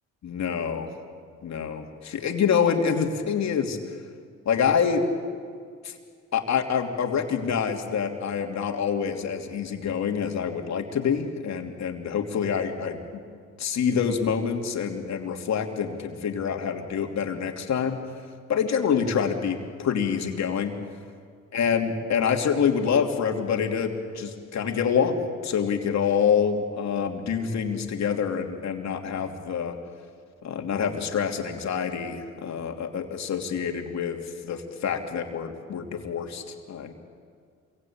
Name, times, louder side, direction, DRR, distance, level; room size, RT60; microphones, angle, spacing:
voice 1, 0.2-0.9 1.4-3.8 4.4-5.0 5.8-6.0 6.3-13.0 13.6-18.0 18.5-20.7 21.5-25.2 25.4-29.8 30.4-36.9, left 7 dB, 65° left, 3 dB, 3.1 m, -26 dB
27.0 x 23.5 x 8.9 m, 2.1 s
cardioid pair, 90°, 30 cm